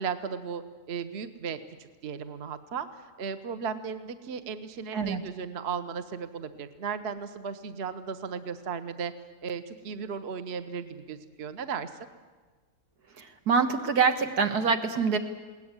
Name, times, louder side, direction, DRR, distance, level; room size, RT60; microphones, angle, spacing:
voice 1, 0.0-9.1 9.4-11.9, right 6 dB, 45° right, 10 dB, 1.1 m, -36 dB
voice 2, 13.2-15.2, right 5 dB, 75° right, 7 dB, 2.0 m, -25 dB
21.0 x 18.0 x 9.7 m, 1.4 s
omnidirectional pair, 1.7 m